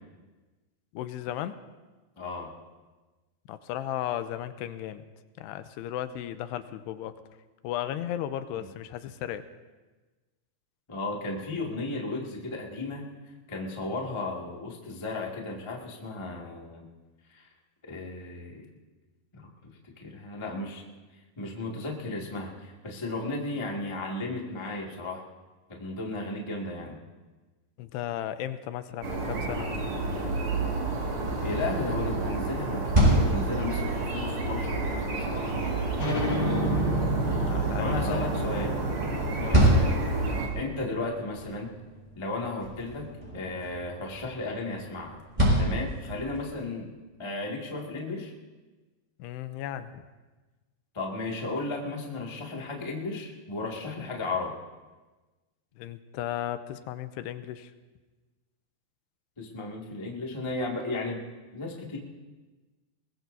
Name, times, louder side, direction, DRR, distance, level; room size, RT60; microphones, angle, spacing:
voice 1, 0.9-1.5 3.5-5.0 5.4-7.1 7.6-9.4 27.8-29.9 37.4-38.4 39.5-39.7 49.2-50.0 55.8-57.7, left 11 dB, 90° left, 11 dB, 2.8 m, -35 dB
voice 2, 2.2-2.5 8.5-8.7 10.9-13.0 13.5-16.8 17.3-17.5 17.8-18.7 19.3-19.4 20.0-20.8 21.4-25.2 25.7-27.0 31.4-35.8 37.2-37.4 37.8-38.8 39.4-40.0 40.5-41.7 42.1-43.1 43.3-45.2 45.6-46.9 47.2-48.3 50.9-54.5 59.4-61.2 61.5-62.0, left 2 dB, 30° left, -2 dB, 0.5 m, -34 dB
sound 1, 29.0-40.5, right 3 dB, 40° right, 2.2 m, -30 dB
sound 2, 32.6-46.6, equal, 10° right, 6.0 m, -29 dB
sound 3, 35.9-41.2, equal, 45° left, 4.0 m, -32 dB
22.0 x 21.5 x 2.7 m, 1.2 s
omnidirectional pair, 4.7 m